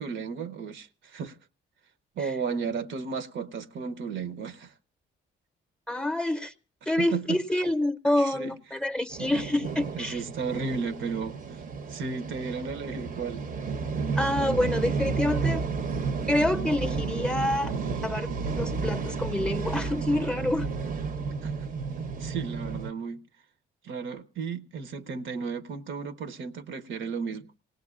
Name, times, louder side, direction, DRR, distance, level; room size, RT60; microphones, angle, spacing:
voice 1, 0.0-1.4 2.2-4.7 7.0-7.4 8.2-8.5 9.9-11.4 11.9-13.4 21.4-21.5 22.2-23.2 23.8-27.5, right 5 dB, 75° right, 0.8 m, -34 dB
voice 2, 5.9-6.5 6.9-10.2 14.1-15.6 16.3-17.7 18.0-20.7, left 1 dB, 5° left, 0.7 m, -27 dB
sound 1, 9.1-22.9, right 4 dB, 45° right, 0.7 m, -32 dB
27.5 x 18.5 x 2.4 m
cardioid pair, 90°, 20 cm